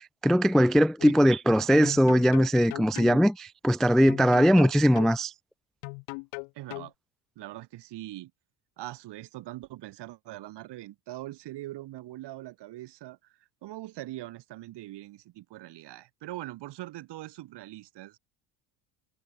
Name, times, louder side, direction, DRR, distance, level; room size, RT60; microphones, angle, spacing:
voice 1, 0.0-5.3, equal, ahead, 0.3 m, -21 dB
sound 1, 1.0-1.1 1.8-3.3 4.1-5.1 5.8-6.9, left 37 dB, 85° left, 1.5 m, -38 dB
voice 2, 6.5-6.9 7.4-8.3 8.8-13.2 13.6-18.2, right 16 dB, 65° right, 2.7 m, -42 dB
supercardioid pair, 95°, 45 cm